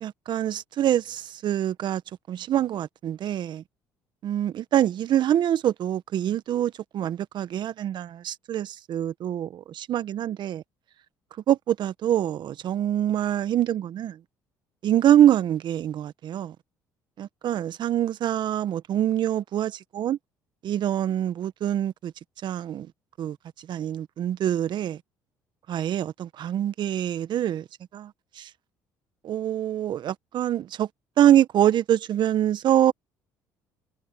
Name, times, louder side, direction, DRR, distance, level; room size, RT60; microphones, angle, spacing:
voice 1, 0.0-2.0 2.3-3.6 4.2-10.6 11.5-14.2 14.8-16.5 17.2-20.2 20.6-22.1 22.4-22.9 23.2-23.4 23.7-25.0 25.7-27.6 27.9-28.1 28.4-28.5 29.2-30.9 31.2-32.9, right 11 dB, 55° right, 1.5 m, -25 dB
hypercardioid pair, 65°, 9 cm